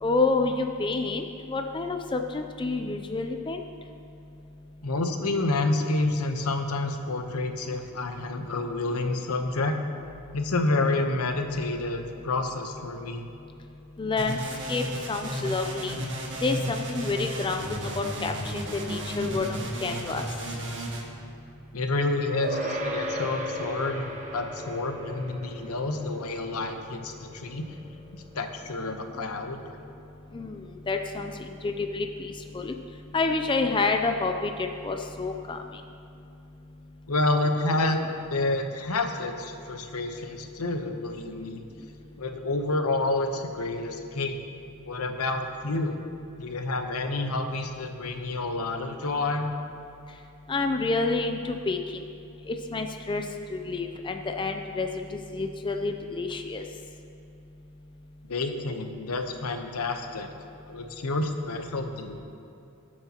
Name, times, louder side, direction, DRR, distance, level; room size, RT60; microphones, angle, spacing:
voice 1, 0.0-3.6 14.0-14.4 14.7-16.0 16.4-20.2 30.3-32.7 33.1-35.6 50.5-52.1 52.5-53.2 53.5-56.6, left 3 dB, 20° left, 5 dB, 0.4 m, -29 dB
voice 2, 4.8-9.8 10.3-13.3 21.7-27.6 28.1-29.6 37.1-38.0 38.3-41.6 42.2-44.4 44.8-46.0 46.4-49.5 58.3-60.3 60.7-62.2, left 2 dB, 75° left, 6 dB, 0.9 m, -29 dB
sound 1, 14.2-21.0, equal, 55° right, 1.5 m, -33 dB
sound 2, 22.4-32.1, equal, 35° right, 1.1 m, -38 dB
19.0 x 7.6 x 2.9 m, 2.8 s
head